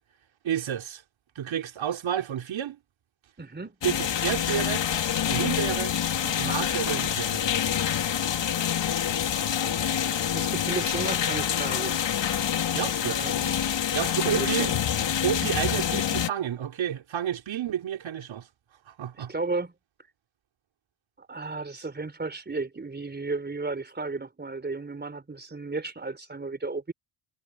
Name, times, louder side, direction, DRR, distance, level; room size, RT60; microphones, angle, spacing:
voice 1, 0.4-1.0 1.4-2.8 3.8-4.9 5.3-6.0 6.2-7.4 12.7-13.2 13.9-14.7 15.2-18.5 18.9-19.3, right 9 dB, 65° right, 3.9 m, -30 dB
voice 2, 3.4-3.8 9.6-12.0 13.1-13.5 14.2-14.8 19.1-19.7 21.2-26.9, right 3 dB, 20° right, 3.9 m, -34 dB
sound 1, 3.8-16.3, left 9 dB, 60° left, 2.9 m, -27 dB
cardioid pair, 80°, 50 cm